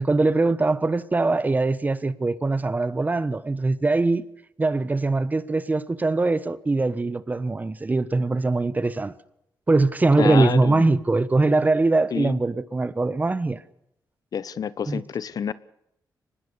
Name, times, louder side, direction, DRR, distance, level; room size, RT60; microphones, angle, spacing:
voice 1, 0.0-4.2 4.6-9.1 9.7-13.6 14.9-15.0, right 3 dB, 25° right, 1.2 m, -22 dB
voice 2, 10.2-10.9 12.1-12.4 14.3-15.5, left 7 dB, 60° left, 1.1 m, -28 dB
24.5 x 20.5 x 7.0 m
cardioid pair, 115°, 7 cm